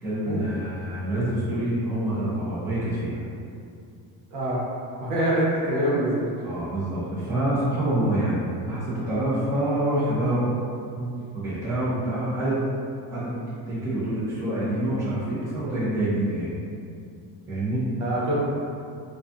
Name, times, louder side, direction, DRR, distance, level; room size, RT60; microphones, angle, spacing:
voice 1, 0.0-3.2 6.4-10.6 10.9-12.6 13.1-13.3 13.7-16.6 17.5-17.9, right 1 dB, 5° right, -12 dB, 0.6 m, -26 dB
voice 2, 4.3-4.6 5.0-6.3 18.0-18.4, right 1 dB, 75° right, -7 dB, 1.0 m, -24 dB
2.3 x 2.3 x 2.5 m, 2.4 s
cardioid pair, 145°, 44 cm